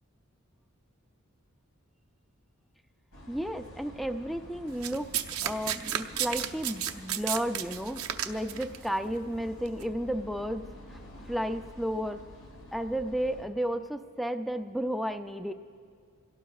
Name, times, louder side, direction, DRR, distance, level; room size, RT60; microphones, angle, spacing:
sound 1, 3.1-13.5, equal, 90° left, 3.1 m, -49 dB
voice 1, 3.3-5.1 5.4-10.6 10.9-11.0 11.3-12.2 12.7-15.5, equal, ahead, 7 dB, 0.4 m, -33 dB
Domestic sounds home sounds, 4.8-8.8 9.7-9.8, right 10 dB, 80° right, 0.7 m, -32 dB
27.0 x 17.5 x 2.3 m, 2.3 s
head